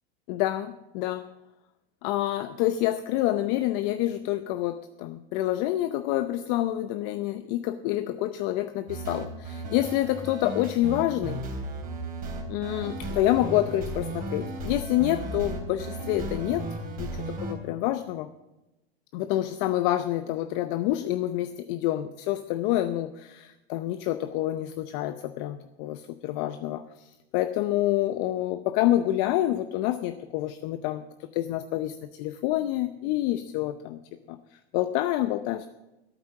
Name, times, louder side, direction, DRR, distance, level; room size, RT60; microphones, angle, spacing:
voice 1, 0.3-1.3 2.0-11.4 12.5-16.7 17.0-18.3 19.1-34.0 34.3-35.7, left 14 dB, 45° left, 10 dB, 0.7 m, -28 dB
sound 1, 8.9-17.5, right 2 dB, 25° right, 3.4 m, -35 dB
13.0 x 8.1 x 7.5 m, 0.98 s
hypercardioid pair, 120°, 32 cm